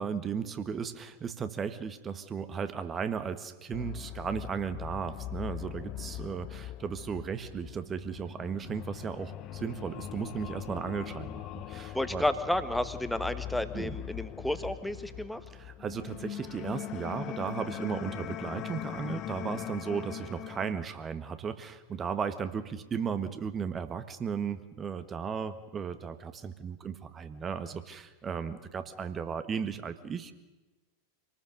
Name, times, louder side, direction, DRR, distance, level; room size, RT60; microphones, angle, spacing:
voice 1, 0.0-12.2 13.7-14.0 15.5-30.3, right 6 dB, 20° right, 11 dB, 1.5 m, -35 dB
sound 1, 3.7-20.7, left 12 dB, 35° left, 1.0 m, -41 dB
voice 2, 11.9-15.4, left 1 dB, ahead, 11 dB, 1.4 m, -31 dB
26.5 x 19.0 x 6.6 m, 1.1 s
figure-of-eight pair, 90°, 0 cm